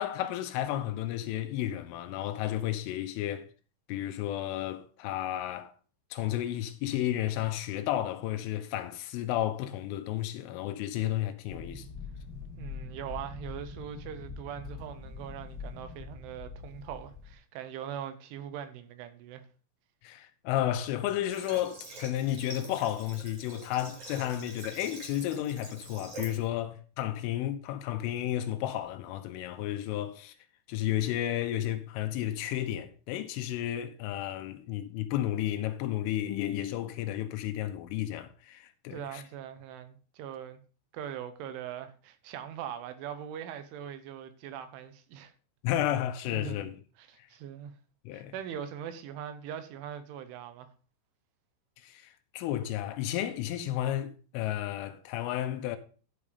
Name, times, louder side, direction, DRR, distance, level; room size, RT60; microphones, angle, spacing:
voice 1, 0.0-3.5 3.9-5.7 6.1-11.9 20.0-30.3 30.7-39.2 45.6-46.7 48.1-48.3 51.8-55.8, left 12 dB, 85° left, 3.3 m, -32 dB
sound 1, 11.5-17.3, left 4 dB, 30° left, 2.5 m, -43 dB
voice 2, 12.6-19.4 38.9-40.6 40.9-45.3 46.3-46.7 47.0-47.8 48.1-50.7, right 9 dB, 80° right, 3.4 m, -41 dB
Water / Water tap faucet, 21.3-26.4, right 2 dB, 40° right, 3.7 m, -46 dB
11.5 x 5.5 x 5.0 m
omnidirectional pair, 5.6 m